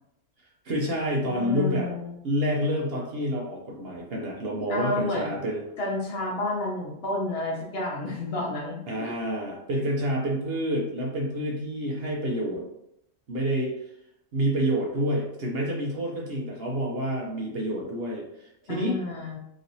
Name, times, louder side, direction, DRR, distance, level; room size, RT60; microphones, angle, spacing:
voice 1, 0.6-1.9 2.2-5.6 8.9-12.6 13.3-13.7 14.3-19.0, equal, 55° right, -2 dB, 0.8 m, -28 dB
voice 2, 1.3-2.2 4.7-5.3 5.8-9.2 18.7-19.4, left 2 dB, 60° left, -2 dB, 0.8 m, -30 dB
3.1 x 2.8 x 2.6 m, 0.79 s
omnidirectional pair, 1.4 m